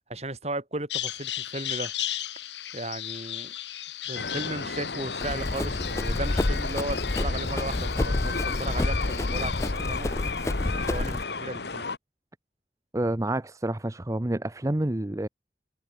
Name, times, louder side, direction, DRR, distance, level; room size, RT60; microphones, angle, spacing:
voice 1, 0.1-1.9 2.7-3.5 4.1-10.1 10.6-11.9, right 2 dB, 35° right, 7.2 m, -35 dB
Bird vocalization bird call bird song, 0.9-9.7, left 13 dB, 90° left, 2.3 m, -36 dB
sound 1, 4.1-12.0, left 4 dB, 70° left, 1.9 m, -34 dB
Run, 5.2-11.2, left 2 dB, 15° left, 0.3 m, -29 dB
voice 2, 12.9-15.3, right 1 dB, 20° right, 0.7 m, -28 dB
head